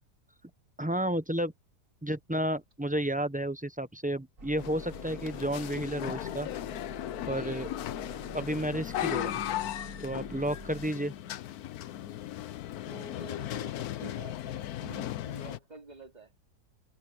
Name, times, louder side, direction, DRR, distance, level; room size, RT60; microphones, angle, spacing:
voice 1, 0.8-1.5 2.0-6.5 7.2-7.7 8.3-9.4 10.0-11.1, right 1 dB, 10° right, 0.4 m, -32 dB
sound 1, 4.4-10.9, right 3 dB, 50° right, 3.1 m, -48 dB
sound 2, 4.6-15.6, left 12 dB, 70° left, 1.2 m, -37 dB
voice 2, 12.8-16.3, right 1 dB, 25° right, 3.0 m, -48 dB
omnidirectional pair, 1.7 m